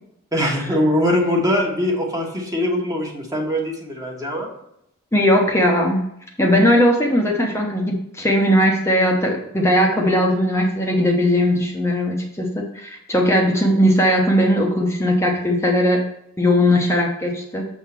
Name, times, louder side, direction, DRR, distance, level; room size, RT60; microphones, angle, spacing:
voice 1, 0.3-4.5, left 1 dB, 15° right, 0 dB, 1.3 m, -22 dB
voice 2, 5.1-6.1 6.4-16.0 16.4-17.6, equal, 15° left, 0 dB, 0.8 m, -18 dB
7.0 x 3.7 x 5.8 m, 0.76 s
head